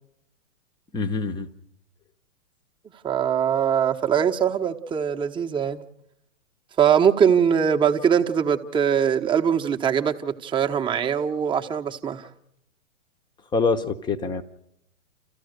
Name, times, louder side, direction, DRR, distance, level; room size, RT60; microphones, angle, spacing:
voice 1, 0.9-1.5 13.5-14.4, left 4 dB, 10° left, 0.9 m, -25 dB
voice 2, 3.0-5.8 6.8-12.3, right 8 dB, 10° right, 1.0 m, -22 dB
28.5 x 14.5 x 6.6 m
figure-of-eight pair, 120°, 42 cm